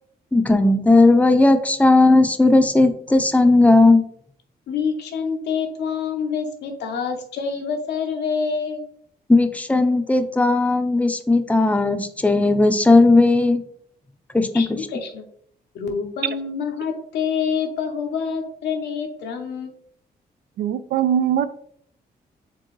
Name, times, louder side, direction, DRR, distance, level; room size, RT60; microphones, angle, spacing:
voice 1, 0.3-4.1 9.3-13.6 14.3-14.8, left 2 dB, 10° left, 9 dB, 0.5 m, -16 dB
voice 2, 4.7-8.9 14.5-15.2 15.7-19.7, left 6 dB, 85° left, 4 dB, 0.8 m, -26 dB
voice 3, 20.6-21.5, right 9 dB, 85° right, 12 dB, 0.4 m, -21 dB
4.5 x 3.6 x 3.1 m, 0.64 s
cardioid pair, 85°, 17 cm